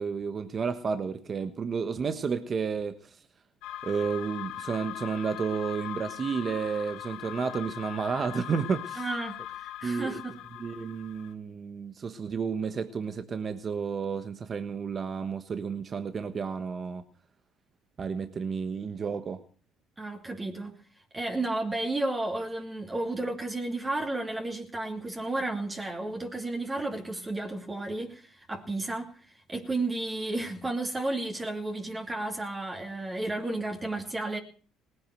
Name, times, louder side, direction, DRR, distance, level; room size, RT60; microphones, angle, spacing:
voice 1, 0.0-3.2 3.8-9.1 9.8-10.2 10.6-17.0 18.0-19.4, right 5 dB, 40° right, 1.3 m, -31 dB
sound 1, 3.6-11.3, left 12 dB, 80° left, 1.3 m, -40 dB
voice 2, 9.0-9.4 9.6-10.3 20.0-20.7 21.1-34.4, right 2 dB, 20° right, 2.8 m, -32 dB
18.5 x 9.6 x 7.8 m
supercardioid pair, 85°, 0 cm